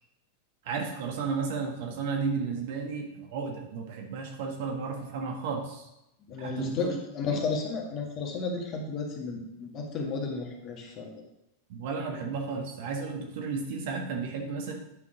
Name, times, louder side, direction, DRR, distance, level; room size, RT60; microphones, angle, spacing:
voice 1, 0.6-5.9 6.4-7.0 7.3-7.4 11.7-14.7, right 5 dB, 50° right, 2 dB, 1.6 m, -33 dB
voice 2, 6.3-11.1, left 4 dB, 35° left, 1 dB, 1.8 m, -33 dB
9.6 x 6.0 x 3.8 m, 0.85 s
figure-of-eight pair, 90°, 0 cm